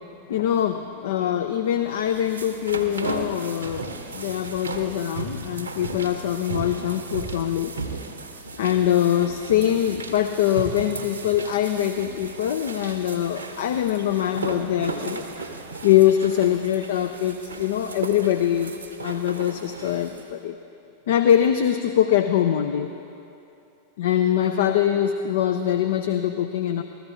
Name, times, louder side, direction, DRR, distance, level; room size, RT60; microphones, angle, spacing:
voice 1, 0.3-7.7 8.6-15.2 15.8-18.7 19.0-20.6 21.1-22.9 24.0-26.8, left 10 dB, 60° left, 8 dB, 0.4 m, -23 dB
sound 1, 1.9-20.3, right 3 dB, 75° right, 0.9 m, -35 dB
14.5 x 14.0 x 3.6 m, 2.8 s
figure-of-eight pair, 90°, 0 cm